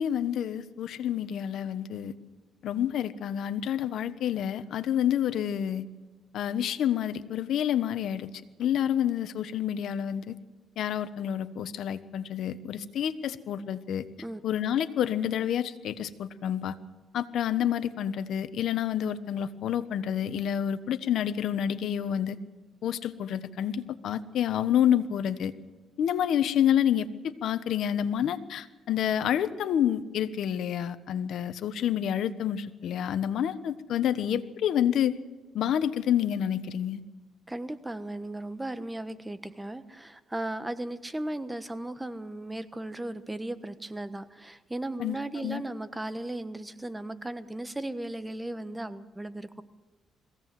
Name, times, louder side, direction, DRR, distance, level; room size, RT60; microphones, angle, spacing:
voice 1, 0.0-2.1 2.6-5.8 6.3-8.3 8.6-10.4 10.8-14.0 14.4-16.7 17.1-22.4 22.8-25.5 26.0-35.1 35.5-37.0 45.0-45.6, left 10 dB, 75° left, 12 dB, 1.2 m, -28 dB
voice 2, 37.5-49.6, right 1 dB, 10° right, 12 dB, 1.3 m, -36 dB
22.0 x 16.5 x 7.7 m, 1.2 s
cardioid pair, 90°, 0 cm